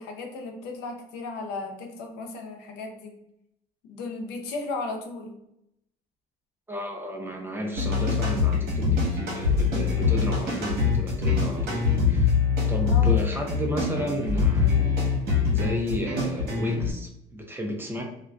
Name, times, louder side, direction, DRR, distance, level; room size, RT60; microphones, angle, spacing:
voice 1, 0.0-3.1 3.8-5.4 12.9-13.2, left 3 dB, 90° left, 3 dB, 0.5 m, -35 dB
voice 2, 6.7-12.3 12.7-15.0 15.5-18.0, equal, 15° right, 1 dB, 0.5 m, -32 dB
sound 1, 7.7-16.9, left 5 dB, 70° right, 1.1 m, -24 dB
2.5 x 2.2 x 2.2 m, 0.81 s
cardioid pair, 110°, 17 cm